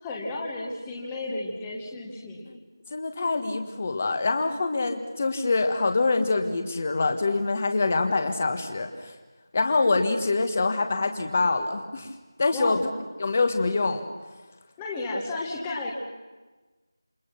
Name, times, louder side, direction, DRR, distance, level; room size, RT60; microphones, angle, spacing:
voice 1, 0.0-2.5 12.5-13.0 14.8-15.9, left 2 dB, 10° left, -2 dB, 1.6 m, -33 dB
voice 2, 2.9-9.1 9.5-12.1 12.4-12.8 13.2-14.1, left 3 dB, 25° left, 7 dB, 1.7 m, -25 dB
28.5 x 26.5 x 6.0 m, 1.3 s
figure-of-eight pair, 175°, 2 cm